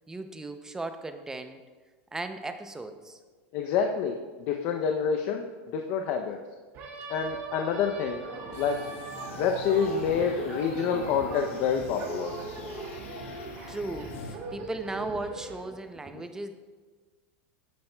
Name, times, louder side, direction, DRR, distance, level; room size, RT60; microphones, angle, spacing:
voice 1, 0.1-1.6 2.1-3.2 13.7-16.5, right 2 dB, 10° right, 8 dB, 0.5 m, -36 dB
voice 2, 3.5-4.2 4.5-5.5 5.7-6.4 7.1-8.2 8.5-8.8 9.4-12.3 16.1-16.2, left 6 dB, 50° left, 4 dB, 0.5 m, -27 dB
sound 1, 6.7-15.6, right 3 dB, 40° right, 1.8 m, -40 dB
sound 2, 8.5-14.4, left 3 dB, 80° left, 1.2 m, -43 dB
9.4 x 8.8 x 2.2 m, 1.4 s
supercardioid pair, 140°, 7 cm